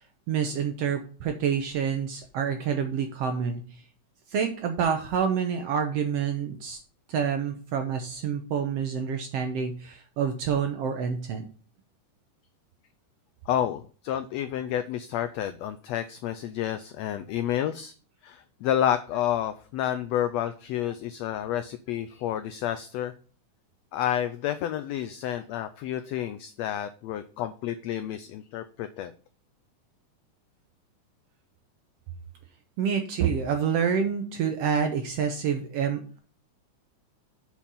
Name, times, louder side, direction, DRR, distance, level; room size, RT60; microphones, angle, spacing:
voice 1, 0.3-3.6 4.3-6.8 7.1-11.5 32.8-36.2, right 7 dB, 70° right, 5 dB, 1.6 m, -27 dB
voice 2, 13.5-17.9 18.2-23.1 23.9-29.1, left 11 dB, 85° left, 9 dB, 1.5 m, -30 dB
6.9 x 4.6 x 5.5 m, 0.40 s
omnidirectional pair, 3.6 m